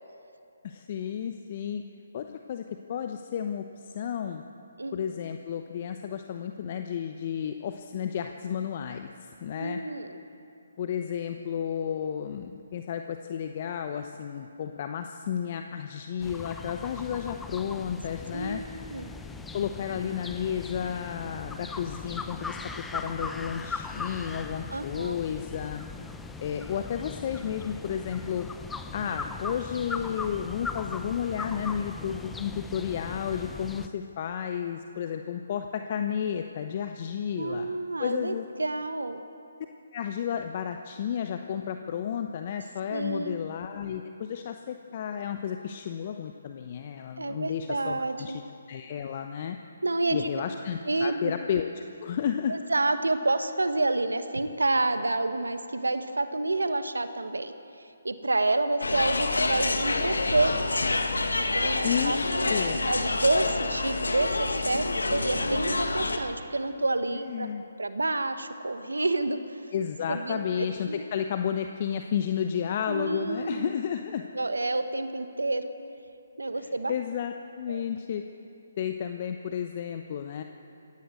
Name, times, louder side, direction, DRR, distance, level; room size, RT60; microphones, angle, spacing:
voice 1, 0.6-1.8 2.1-4.4 4.9-9.8 10.8-18.6 19.5-22.6 22.9-25.8 26.4-28.5 28.9-37.7 38.0-38.5 39.9-48.4 48.7-49.6 50.1-52.5 61.8-62.8 67.1-67.6 69.7-74.2 76.6-78.2 78.8-80.4, left 8 dB, 40° left, 6 dB, 0.9 m, -32 dB
voice 2, 4.8-5.2 9.6-10.2 18.3-19.1 24.7-25.2 37.4-39.2 42.9-43.4 47.2-48.4 49.8-50.3 50.9-51.3 52.5-57.5 57.8-60.5 61.3-64.8 65.1-67.5 67.8-69.6 70.1-71.0 72.9-73.7 74.3-75.7 76.4-76.9 77.7-77.8, right 2 dB, 80° right, 10 dB, 1.3 m, -29 dB
sound 1, 16.2-33.9, left 4 dB, 5° left, 0.8 m, -39 dB
sound 2, 58.8-66.2, left 2 dB, 80° left, 1.8 m, -27 dB
21.0 x 16.5 x 7.9 m, 2.9 s
figure-of-eight pair, 140°, 0 cm